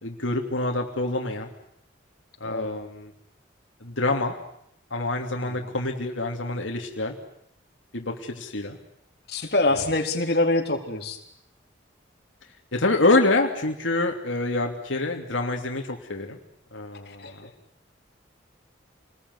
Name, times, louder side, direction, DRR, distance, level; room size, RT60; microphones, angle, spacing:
voice 1, 0.0-1.5 2.4-3.1 3.8-4.3 4.9-7.1 7.9-8.8 9.8-9.9 12.7-16.4 16.7-17.5, left 2 dB, 85° left, 2 dB, 2.9 m, -26 dB
voice 2, 5.4-5.7 9.3-11.2 17.1-17.5, left 2 dB, 55° left, 2 dB, 3.8 m, -25 dB
28.5 x 21.0 x 9.6 m, 0.74 s
head